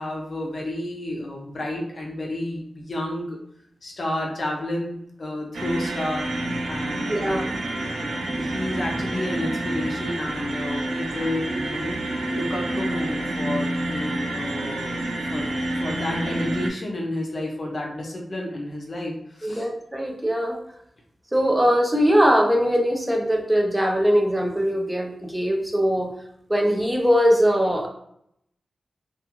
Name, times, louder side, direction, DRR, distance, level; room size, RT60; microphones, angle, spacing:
voice 1, 0.0-3.4 3.8-6.3 6.7-7.5 7.7-11.9 12.3-15.0 15.3-19.7, left 1 dB, 40° left, -1 dB, 0.5 m, -31 dB
sound 1, 5.5-16.7, right 1 dB, 80° right, 0.4 m, -28 dB
voice 2, 7.1-7.5 19.4-20.6 21.3-26.1 26.5-27.9, equal, 10° right, 1 dB, 0.4 m, -21 dB
2.4 x 2.3 x 2.9 m, 0.74 s
wide cardioid pair, 170°, 0 cm